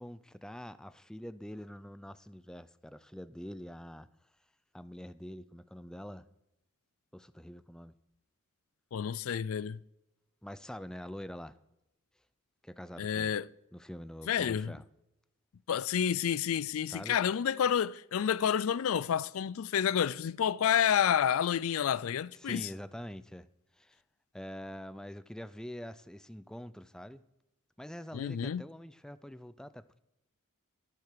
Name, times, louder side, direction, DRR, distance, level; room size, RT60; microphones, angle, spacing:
voice 1, 0.0-4.1 4.7-6.2 7.1-7.9 10.4-11.6 12.6-13.3 13.7-14.8 16.9-17.2 22.4-23.5 23.7-24.0 24.3-27.2 27.8-30.0, equal, 5° left, 0.4 m, -45 dB
voice 2, 8.9-9.8 13.0-13.5 14.3-14.7 15.7-22.7 28.1-28.6, left 8 dB, 75° left, 0.4 m, -29 dB
11.5 x 10.5 x 6.7 m
head